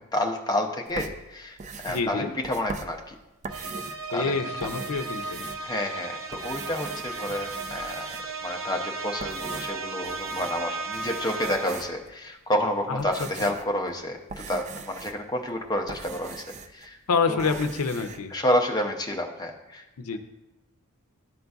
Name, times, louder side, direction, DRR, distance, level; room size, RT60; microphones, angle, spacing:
voice 1, 0.0-3.1 4.1-4.3 5.6-8.1 8.4-16.4 16.7-17.0 17.3-17.5 18.3-19.8, left 1 dB, 15° left, 3 dB, 0.6 m, -29 dB
sound 1, 0.9-4.1 4.5-6.0 6.3-8.5 9.0-10.6 10.9-12.1 12.7-16.9 17.1-18.2, right 4 dB, 30° right, 0.3 m, -41 dB
voice 2, 1.9-2.3 4.1-5.5 12.9-13.0 13.4-13.5 17.1-18.3 20.0-20.2, left 4 dB, 90° left, 8 dB, 0.5 m, -27 dB
sound 2, 3.5-12.0, right 3 dB, 80° right, 0.8 m, -35 dB
11.0 x 3.9 x 2.3 m, 0.98 s
head